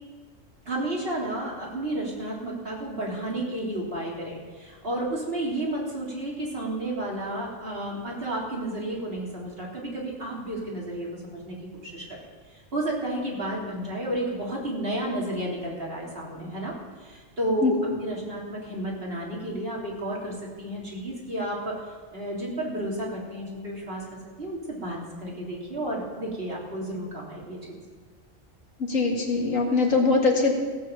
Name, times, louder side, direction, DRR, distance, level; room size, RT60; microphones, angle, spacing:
voice 1, 0.7-12.2 12.5-16.7 17.0-17.8 18.0-21.8 22.1-27.8, right 1 dB, 45° right, -3 dB, 3.4 m, -32 dB
voice 2, 17.6-18.0 28.8-30.6, left 3 dB, 80° left, 1 dB, 2.3 m, -22 dB
15.5 x 8.1 x 7.3 m, 1.4 s
omnidirectional pair, 1.4 m